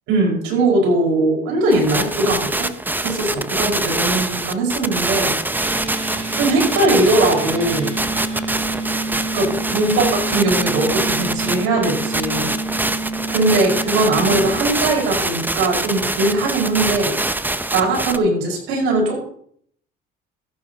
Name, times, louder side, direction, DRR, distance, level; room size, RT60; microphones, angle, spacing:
voice 1, 0.1-2.7 3.0-5.3 6.4-7.9 9.3-12.5 13.3-17.2 17.7-19.2, right 2 dB, 75° right, 0 dB, 5.0 m, -20 dB
sound 1, 1.7-18.2, right 2 dB, 10° right, 0.7 m, -24 dB
sound 2, 5.5-14.6, right 2 dB, 40° right, 4.5 m, -28 dB
14.5 x 11.5 x 2.9 m, 0.62 s
supercardioid pair, 85°, 21 cm